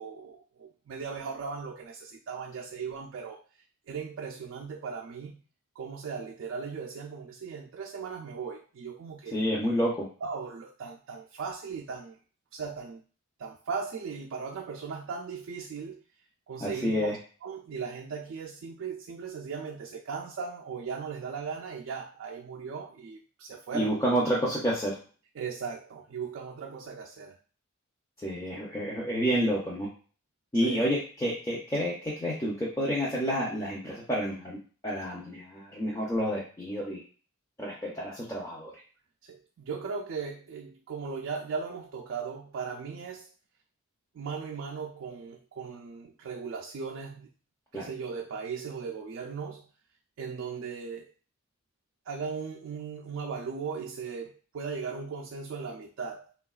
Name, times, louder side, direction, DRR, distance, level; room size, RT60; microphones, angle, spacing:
voice 1, 0.0-5.4 5.8-9.4 10.2-12.2 12.5-13.0 13.4-16.0 16.5-17.2 17.4-24.0 25.4-27.4 30.5-30.9 39.2-43.3 44.1-47.3 47.7-49.7 50.2-51.1 52.1-56.3, right 5 dB, 60° right, 0 dB, 0.3 m, -38 dB
voice 2, 9.3-10.1 16.6-17.2 23.7-25.0 28.2-29.9 30.5-34.6 34.8-37.0 37.6-38.7 47.7-47.9, equal, 15° left, -6 dB, 0.5 m, -29 dB
3.5 x 2.2 x 2.3 m, 0.39 s
head